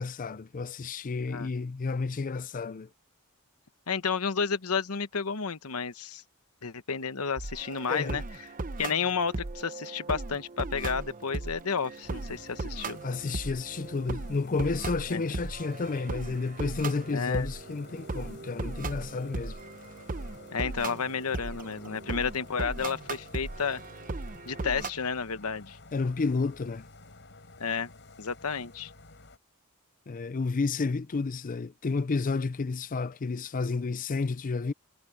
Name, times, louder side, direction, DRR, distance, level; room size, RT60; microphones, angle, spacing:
voice 1, 0.0-2.9 7.9-8.2 13.0-19.6 25.9-26.9 30.1-34.7, left 4 dB, 40° left, 0.5 m, -31 dB
voice 2, 3.9-6.2 6.6-8.2 8.8-13.0 15.1-15.2 17.1-17.5 20.5-23.8 24.4-25.8 27.6-27.9 28.2-28.9, left 5 dB, 80° left, 1.0 m, -31 dB
sound 1, 7.4-24.9, right 3 dB, 40° right, 0.8 m, -38 dB
sound 2, 12.0-29.4, left 2 dB, 55° left, 7.1 m, -52 dB
head